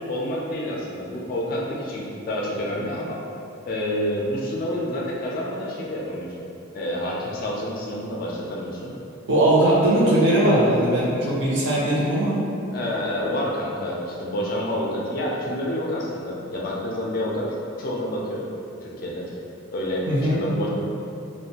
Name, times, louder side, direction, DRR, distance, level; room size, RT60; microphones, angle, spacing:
voice 1, 0.1-3.2 3.7-6.3 6.7-8.9 12.7-17.5 17.8-18.5 18.8-19.3 19.7-20.7, left 1 dB, 45° left, -4 dB, 0.3 m, -28 dB
voice 2, 9.3-12.4 20.1-20.4, right 1 dB, 55° right, -6 dB, 0.6 m, -19 dB
2.5 x 2.1 x 2.8 m, 2.7 s
head